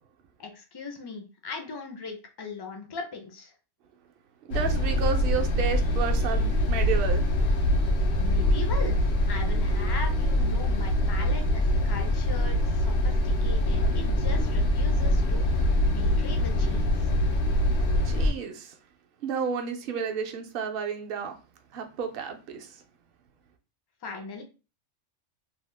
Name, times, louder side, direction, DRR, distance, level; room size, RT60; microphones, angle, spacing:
voice 1, 0.4-3.5 8.2-9.0 9.3-15.5 15.9-17.1 24.0-24.4, left 4 dB, 40° left, 3 dB, 0.3 m, -39 dB
sound 1, 4.5-18.3, left 1 dB, 90° left, 1.0 m, -24 dB
voice 2, 4.5-7.3 18.0-18.7 19.2-21.4 21.7-22.7, right 6 dB, 60° right, 5 dB, 0.7 m, -31 dB
2.8 x 2.1 x 3.2 m, 0.32 s
omnidirectional pair, 1.3 m